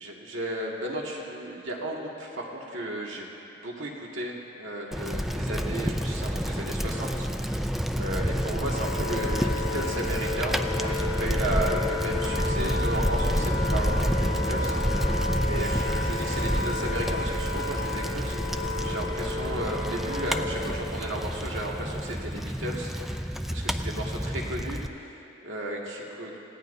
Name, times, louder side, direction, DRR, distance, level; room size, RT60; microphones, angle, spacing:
voice 1, 0.0-26.4, right 1 dB, 80° right, -2 dB, 2.1 m, -34 dB
Bicycle, 4.9-24.9, equal, ahead, 0.3 m, -29 dB
Wind instrument woodwind instrument, 8.3-20.9, left 3 dB, 90° left, 1.4 m, -33 dB
25.5 x 17.5 x 2.7 m, 2.8 s
head